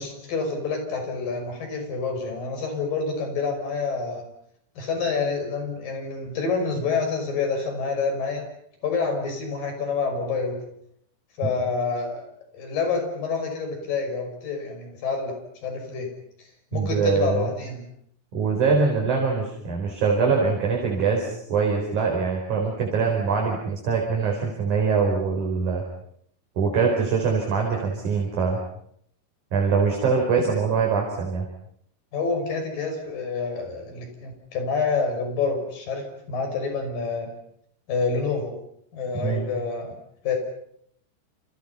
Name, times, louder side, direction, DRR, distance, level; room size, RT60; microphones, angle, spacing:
voice 1, 0.0-4.2 4.8-8.4 8.8-10.6 11.4-12.3 12.5-16.1 16.7-17.8 32.1-37.3 37.9-38.5 38.9-40.0 40.2-40.4, left 4 dB, 60° left, 4 dB, 7.4 m, -27 dB
voice 2, 16.7-17.5 18.3-25.8 26.6-28.6 29.5-31.5 39.1-39.4, right 5 dB, 50° right, 0 dB, 5.8 m, -23 dB
29.0 x 29.0 x 5.7 m, 0.70 s
omnidirectional pair, 4.6 m